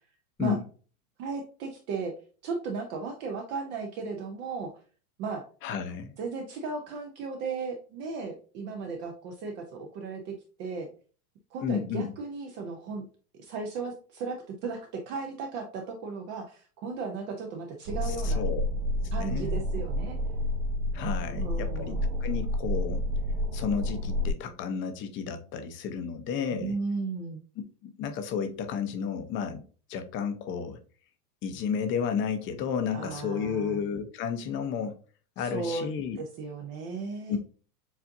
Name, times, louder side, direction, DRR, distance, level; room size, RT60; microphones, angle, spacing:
voice 1, 1.2-2.1 2.4-4.7 5.2-5.4 6.2-10.9 11.5-13.0 13.4-18.4 19.1-20.2 21.3-22.0 26.5-27.4 32.9-33.8 35.4-35.9 36.2-37.4, right 4 dB, 25° right, 0.4 m, -35 dB
voice 2, 5.6-6.1 11.6-12.1 18.0-18.6 19.2-19.6 20.9-21.9 22.2-23.0 23.5-26.8 27.8-29.6 29.9-30.8 31.4-35.0 35.4-36.2 37.3-37.4, left 7 dB, 25° left, 0.6 m, -32 dB
sound 1, 17.9-24.3, left 1 dB, 90° right, 0.8 m, -29 dB
7.1 x 2.5 x 2.5 m
supercardioid pair, 140°, 47 cm